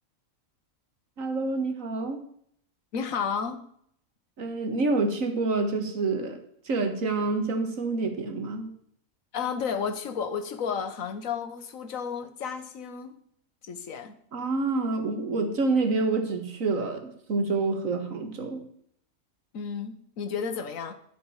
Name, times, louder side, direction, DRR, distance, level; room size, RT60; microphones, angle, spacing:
voice 1, 1.2-2.2 4.4-6.4 6.7-8.7 14.3-18.6, right 3 dB, 75° right, 6 dB, 1.9 m, -27 dB
voice 2, 2.9-3.6 9.3-13.2 13.6-14.2 19.5-20.9, left 6 dB, 75° left, 9 dB, 1.4 m, -32 dB
12.0 x 5.4 x 7.1 m, 0.67 s
omnidirectional pair, 1.4 m